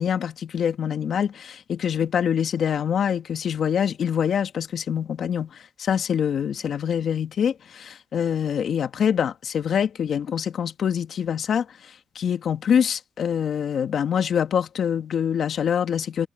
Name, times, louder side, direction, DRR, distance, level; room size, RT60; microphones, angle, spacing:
voice 1, 0.0-5.5 5.8-11.7 12.2-16.3, left 8 dB, 60° left, 2.1 m, -25 dB
cardioid pair, 90°, 0 cm